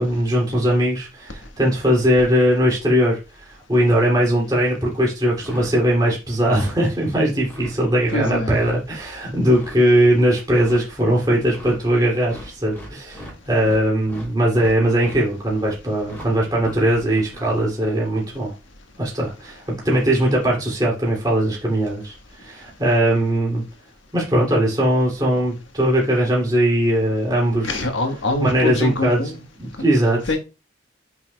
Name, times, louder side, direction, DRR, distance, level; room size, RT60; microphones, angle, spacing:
voice 1, 0.0-3.2 3.7-18.5 19.0-23.6 24.1-27.9 28.4-29.2 29.6-30.2, equal, 20° right, 2.6 m, -20 dB
sound 1, 5.4-5.8 6.3-6.8 7.3-7.8 8.3-8.8 9.3-9.8 10.4-10.8 11.4-11.8 12.3-13.8 14.0-15.2 16.0-16.3 16.6-17.4, equal, 10° left, 3.0 m, -39 dB
voice 2, 8.1-8.6 27.6-29.4 29.7-29.9 30.3-30.4, left 2 dB, 80° left, 1.4 m, -24 dB
9.4 x 5.7 x 2.3 m
head